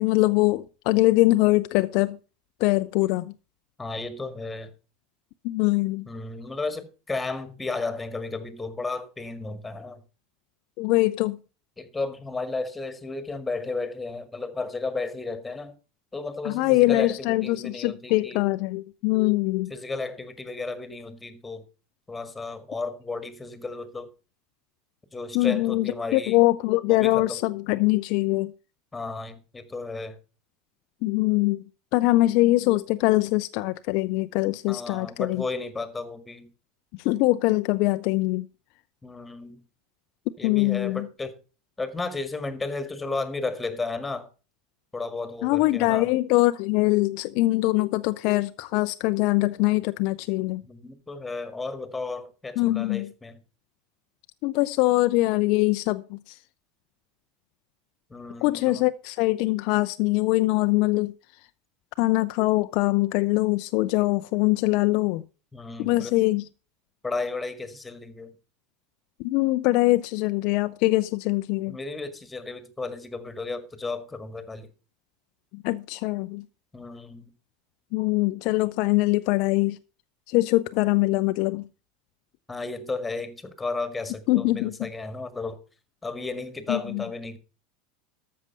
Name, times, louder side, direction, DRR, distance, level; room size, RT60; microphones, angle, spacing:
voice 1, 0.0-2.2 2.6-3.3 5.4-6.1 10.8-11.4 16.4-19.7 25.3-28.5 31.0-31.6 31.9-35.4 37.0-38.4 40.4-41.0 45.4-50.6 52.6-53.1 54.4-56.3 58.4-61.1 62.0-65.2 65.8-66.4 69.2-71.8 75.5-76.4 77.9-79.8 80.3-81.7 84.3-84.9 86.7-87.0, left 20 dB, 55° left, 0.5 m, -23 dB
voice 2, 3.8-4.7 6.1-10.0 11.8-15.7 16.1-18.4 19.7-21.6 22.1-24.1 25.1-26.4 26.9-27.4 28.9-30.2 34.7-36.5 39.0-39.6 40.4-41.4 41.8-44.3 44.9-46.1 50.6-53.4 58.1-58.8 65.5-66.1 67.0-68.4 71.7-74.7 76.7-77.3 82.5-85.6 86.0-87.4, left 3 dB, 10° left, 1.9 m, -33 dB
13.0 x 6.4 x 5.4 m
figure-of-eight pair, 80°, 0 cm